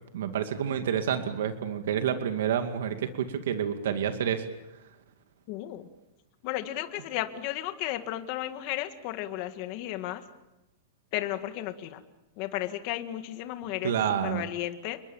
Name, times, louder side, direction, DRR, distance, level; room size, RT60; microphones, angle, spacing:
voice 1, 0.1-4.4 13.8-14.5, right 8 dB, 75° right, 6 dB, 2.4 m, -29 dB
voice 2, 5.5-5.9 6.4-10.2 11.1-12.0 12.4-15.0, left 14 dB, 35° left, 8 dB, 1.9 m, -34 dB
29.5 x 22.0 x 7.2 m, 0.96 s
supercardioid pair, 175°, 0 cm